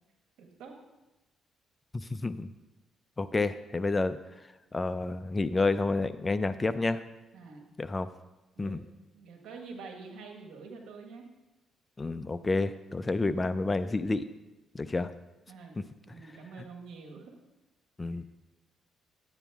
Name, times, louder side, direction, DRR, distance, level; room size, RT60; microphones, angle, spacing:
voice 1, 0.4-0.8 7.3-7.6 8.5-8.8 9.1-11.3 15.5-15.8 16.1-17.3, right 4 dB, 90° right, 2 dB, 1.6 m, -46 dB
voice 2, 1.9-2.5 3.2-4.2 4.7-7.0 7.8-8.1 8.6-8.8 12.0-14.2 14.7-15.1 15.8-15.9 18.0-18.2, left 3 dB, 25° left, 12 dB, 0.5 m, -29 dB
11.0 x 9.0 x 3.5 m, 1.0 s
cardioid pair, 90°, 0 cm